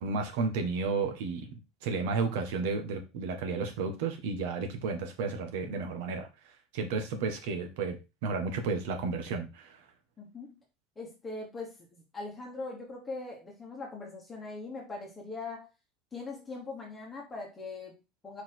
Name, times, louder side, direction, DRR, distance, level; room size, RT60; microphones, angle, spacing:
voice 1, 0.0-1.5 1.8-6.3 6.7-9.8, right 4 dB, 75° right, 6 dB, 1.5 m, -32 dB
voice 2, 10.2-10.6 10.9-15.7 16.1-18.4, left 3 dB, 15° left, -2 dB, 1.3 m, -41 dB
5.0 x 4.2 x 4.6 m, 0.27 s
cardioid pair, 170°, 0 cm